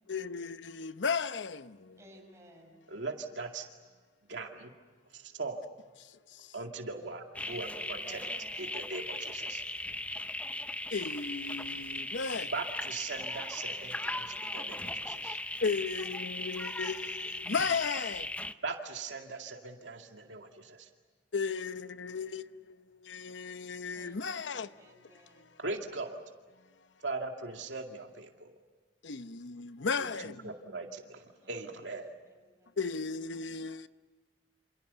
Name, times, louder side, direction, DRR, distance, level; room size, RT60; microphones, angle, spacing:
voice 1, 0.1-2.0 6.0-6.5 10.9-12.5 15.6-18.3 21.3-24.7 25.4-25.5 29.0-30.5 32.8-33.9, left 5 dB, 85° left, 0.8 m, -35 dB
voice 2, 2.0-2.8 7.5-8.9 13.6-15.2 23.9-25.5 31.4-31.9 32.3-32.8, right 1 dB, 15° right, 6.7 m, -57 dB
voice 3, 2.9-3.7 4.3-4.7 5.1-5.7 6.5-8.2 8.6-9.6 12.5-14.8 15.1-15.4 18.6-20.9 25.6-26.2 27.0-28.6 30.0-32.1, right 3 dB, 85° right, 2.2 m, -40 dB
sound 1, 7.3-18.5, left 2 dB, 10° left, 0.7 m, -38 dB
28.0 x 27.5 x 6.9 m
head